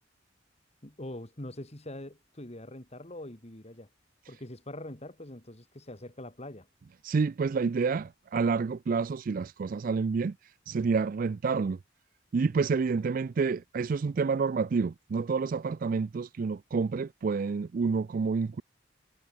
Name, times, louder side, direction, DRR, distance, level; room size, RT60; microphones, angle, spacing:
voice 1, 0.8-3.9 4.3-6.7, left 1 dB, 35° left, 2.5 m, -43 dB
voice 2, 7.0-11.8 12.3-18.6, right 5 dB, 45° right, 0.4 m, -29 dB
head